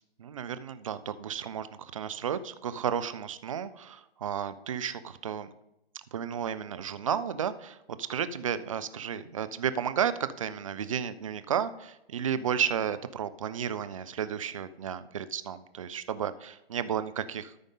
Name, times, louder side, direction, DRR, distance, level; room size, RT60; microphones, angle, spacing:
voice 1, 0.2-5.5 6.1-17.5, right 8 dB, 35° right, 13 dB, 0.4 m, -33 dB
13.0 x 5.1 x 3.9 m, 0.90 s
figure-of-eight pair, 140°, 31 cm